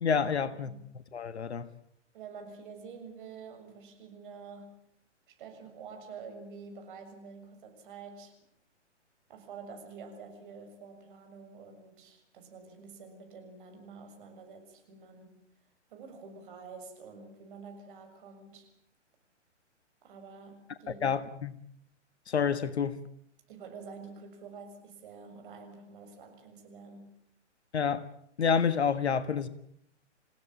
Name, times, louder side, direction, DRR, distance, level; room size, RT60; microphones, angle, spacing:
voice 1, 0.0-0.7 1.1-1.7 20.9-21.5 22.3-23.0 27.7-28.1 28.4-29.5, left 6 dB, 60° left, 1.5 m, -28 dB
voice 2, 2.1-4.8 5.3-8.4 9.3-15.4 15.9-18.7 20.0-21.1 23.5-27.1, right 5 dB, 45° right, 6.8 m, -48 dB
28.5 x 16.5 x 8.7 m
figure-of-eight pair, 125°, 36 cm